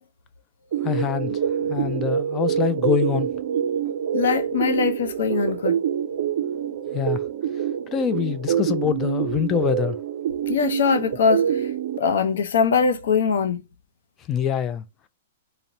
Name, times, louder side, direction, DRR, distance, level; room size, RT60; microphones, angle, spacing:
sound 1, 0.7-12.0, right 9 dB, 65° right, 0.4 m, -26 dB
voice 1, 0.8-1.3 1.7-3.3 6.9-7.2 7.9-10.0 14.3-14.8, left 8 dB, 25° left, 0.4 m, -24 dB
voice 2, 4.1-5.8 10.5-11.6 12.0-13.6, left 6 dB, 75° left, 0.6 m, -22 dB
4.0 x 2.1 x 2.6 m
hypercardioid pair, 140°, 0 cm